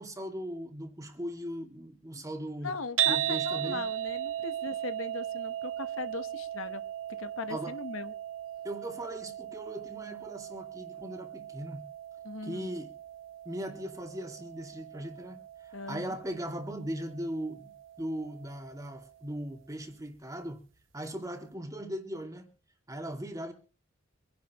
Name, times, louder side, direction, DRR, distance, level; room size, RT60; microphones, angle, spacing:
voice 1, 0.0-2.8 3.1-3.8 7.5-7.7 8.6-11.8 12.4-12.9 13.4-15.4 15.9-17.7 18.0-20.6 20.9-22.5 22.9-23.5, right 1 dB, 15° right, 2.4 m, -38 dB
voice 2, 2.6-6.8 7.2-8.1 12.2-12.7 15.7-16.2, left 4 dB, 80° left, 1.1 m, -39 dB
sound 1, 3.0-19.2, right 12 dB, 70° right, 1.3 m, -37 dB
26.0 x 10.5 x 3.1 m
head